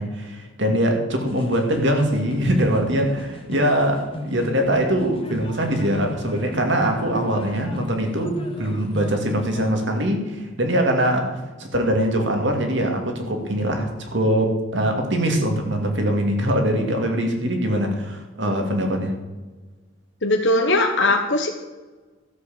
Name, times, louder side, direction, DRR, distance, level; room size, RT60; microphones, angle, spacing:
voice 1, 0.0-19.2, equal, 60° right, 4 dB, 2.5 m, -22 dB
sound 1, 1.2-9.7, left 1 dB, 25° left, 1.4 m, -36 dB
voice 2, 20.2-21.5, left 2 dB, 60° left, 3 dB, 1.2 m, -19 dB
13.0 x 8.0 x 7.8 m, 1.3 s
head